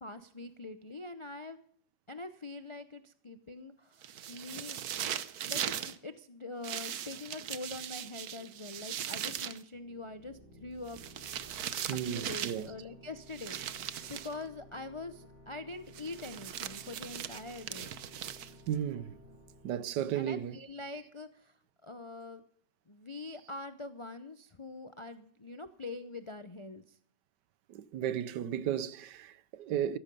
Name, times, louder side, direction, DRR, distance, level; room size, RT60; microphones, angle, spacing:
voice 1, 0.0-1.6 2.1-4.8 5.4-11.0 11.9-17.9 20.0-22.4 22.9-27.0, left 2 dB, 50° left, 0.3 m, -44 dB
sound 1, 4.0-6.0 6.6-9.6 10.9-12.7 13.3-14.4 15.9-18.7, right 10 dB, 65° right, 1.3 m, -39 dB
sound 2, 9.7-21.1, left 1 dB, 35° right, 6.9 m, -56 dB
voice 2, 11.9-12.7 18.7-19.2 19.6-20.6 27.7-30.0, right 10 dB, 85° right, 1.4 m, -34 dB
16.0 x 14.0 x 5.4 m
omnidirectional pair, 1.8 m